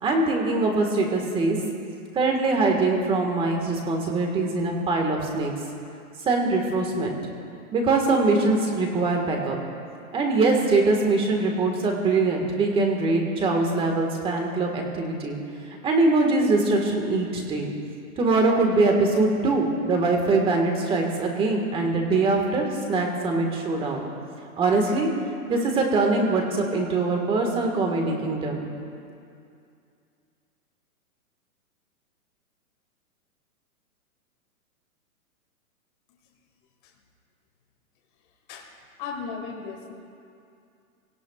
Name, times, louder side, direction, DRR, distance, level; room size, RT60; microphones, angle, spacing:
voice 1, 0.0-1.6 2.1-5.5 6.2-7.2 7.7-9.6 10.1-15.4 15.8-17.7 18.2-24.1 24.6-25.1 25.5-28.7, right 3 dB, 10° right, 1 dB, 1.7 m, -23 dB
voice 2, 39.0-39.9, left 5 dB, 35° left, -1 dB, 2.2 m, -35 dB
26.5 x 18.0 x 2.4 m, 2.4 s
hypercardioid pair, 155°, 44 cm